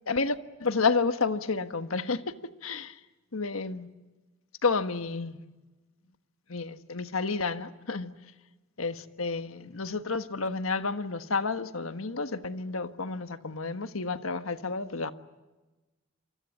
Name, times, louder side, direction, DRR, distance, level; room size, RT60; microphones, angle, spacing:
voice 1, 0.1-2.3 2.6-3.0 3.3-3.9 4.6-5.4 6.5-8.1 8.8-15.1, left 4 dB, 85° left, 1.5 m, -30 dB
28.5 x 24.5 x 8.5 m
head